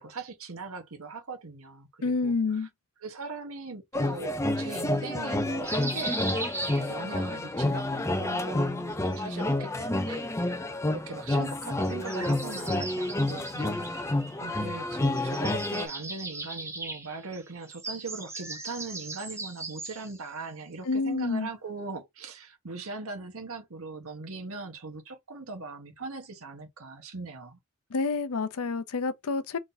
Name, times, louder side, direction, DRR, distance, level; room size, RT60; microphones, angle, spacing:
voice 1, 0.0-2.7 3.0-6.2 6.7-10.6 10.9-14.1 14.4-27.6, right 3 dB, 65° right, 1.2 m, -40 dB
voice 2, 2.0-2.7 20.9-21.5 27.9-29.6, left 4 dB, 75° left, 0.6 m, -28 dB
sound 1, 3.9-15.9, left 1 dB, 15° left, 0.5 m, -29 dB
sound 2, 5.6-7.4 8.8-9.8 11.8-14.8 15.0-20.2, right 2 dB, 10° right, 0.9 m, -39 dB
3.7 x 2.7 x 3.9 m
head